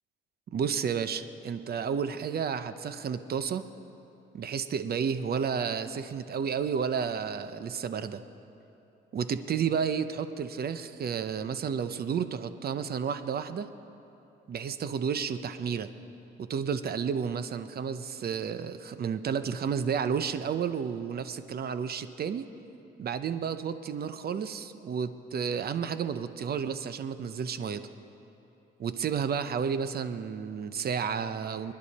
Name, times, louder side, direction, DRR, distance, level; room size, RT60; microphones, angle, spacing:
voice 1, 0.5-3.6 4.3-8.2 9.1-13.7 14.5-15.9 16.4-22.5 23.0-27.8 28.8-31.7, right 7 dB, 50° right, 11 dB, 0.8 m, -31 dB
25.5 x 10.5 x 4.2 m, 3.0 s
cardioid pair, 90°, 20 cm